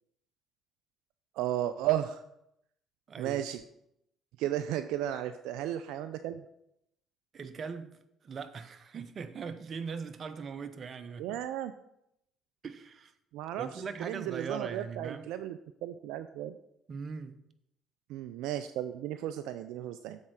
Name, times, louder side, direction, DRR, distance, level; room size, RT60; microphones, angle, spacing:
voice 1, 1.3-2.2 3.2-3.6 4.4-6.4 11.2-11.7 13.3-16.6 18.1-20.2, right 12 dB, 75° right, 10 dB, 0.3 m, -34 dB
voice 2, 3.1-3.4 7.3-11.4 12.6-13.1 13.6-15.3 16.9-17.4, right 5 dB, 45° right, 10 dB, 0.7 m, -40 dB
7.3 x 4.5 x 6.2 m, 0.79 s
hypercardioid pair, 60°, 0 cm